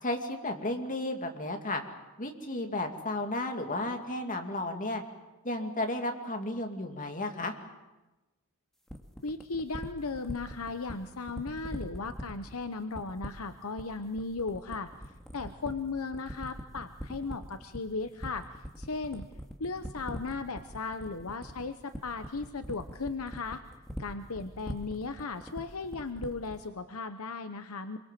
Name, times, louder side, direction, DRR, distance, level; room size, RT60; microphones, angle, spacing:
voice 1, 0.0-1.8 2.2-5.0 5.4-7.5, left 2 dB, 35° left, 4 dB, 2.6 m, -33 dB
sound 1, 8.9-26.6, equal, ahead, 2.3 m, -41 dB
voice 2, 9.2-14.9 15.3-18.4 18.8-19.2 19.6-23.6 24.0-28.0, left 4 dB, 70° left, 9 dB, 1.0 m, -36 dB
26.5 x 23.5 x 7.6 m, 1.1 s
head